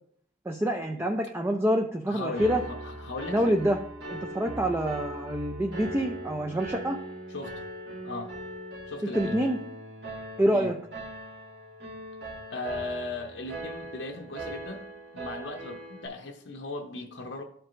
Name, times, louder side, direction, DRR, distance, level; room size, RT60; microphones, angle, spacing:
voice 1, 0.5-2.6 3.3-3.8 4.1-7.0 9.0-9.6 10.4-10.8, equal, 10° right, 0.4 m, -26 dB
voice 2, 2.1-3.6 7.3-7.6 8.0-8.4 8.9-9.4 10.5-10.7 12.5-14.9 15.1-17.4, left 2 dB, 75° left, 0.8 m, -37 dB
Piano, 2.3-16.1, right 1 dB, 55° right, 1.9 m, -40 dB
12.5 x 4.6 x 2.5 m
head